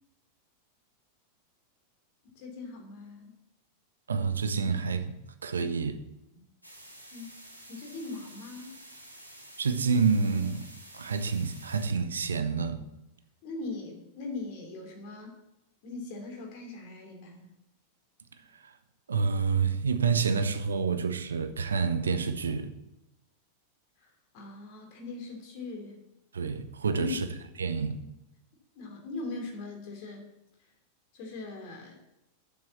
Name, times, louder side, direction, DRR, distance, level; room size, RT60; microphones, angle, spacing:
voice 1, 2.3-3.3 6.3-6.4 7.1-7.4 7.7-8.8 13.4-15.4 15.8-17.5 24.0-24.1 24.3-26.0 27.0-27.2 28.7-30.3 31.1-32.0, left 3 dB, 45° left, 3.1 m, -40 dB
voice 2, 4.1-6.0 9.6-10.7 10.9-12.8 19.1-22.7 26.3-27.3 27.6-28.0, right 5 dB, 70° right, 0.9 m, -28 dB
sound 1, 6.6-11.9, right 1 dB, 90° right, 1.7 m, -50 dB
7.5 x 7.4 x 7.4 m
figure-of-eight pair, 90°, 0 cm